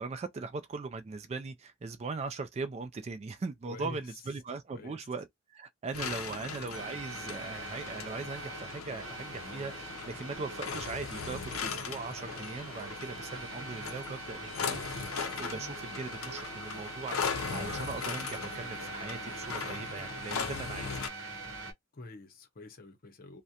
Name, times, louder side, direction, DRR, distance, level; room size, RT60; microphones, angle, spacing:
voice 1, 0.0-5.3 5.5-15.1 15.4-21.0, right 4 dB, 30° right, 0.3 m, -40 dB
voice 2, 3.6-4.2 4.7-5.1 6.0-6.5 21.9-23.4, left 2 dB, 45° left, 0.7 m, -47 dB
sound 1, 5.9-21.1, left 5 dB, 80° left, 0.5 m, -39 dB
sound 2, 6.7-21.7, right 3 dB, 85° right, 0.8 m, -43 dB
2.4 x 2.1 x 2.7 m
head